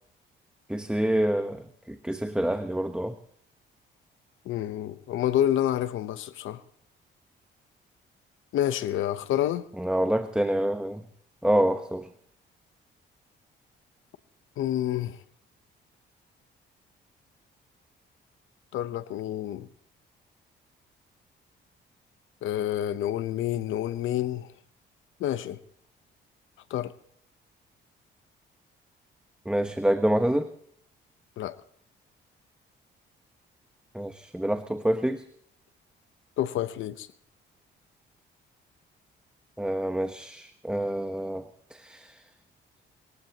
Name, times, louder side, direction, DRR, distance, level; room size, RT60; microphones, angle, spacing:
voice 1, 0.7-3.2 9.8-11.0 11.4-12.1 29.4-30.5 33.9-35.2 39.6-42.2, right 1 dB, 5° right, 1.0 m, -27 dB
voice 2, 4.4-6.6 8.5-9.6 14.6-15.2 18.7-19.7 22.4-24.5 25.2-25.6 26.7-26.9 31.4-31.6 36.4-37.1, left 11 dB, 80° left, 0.9 m, -28 dB
28.0 x 15.0 x 2.9 m
cardioid pair, 90°, 20 cm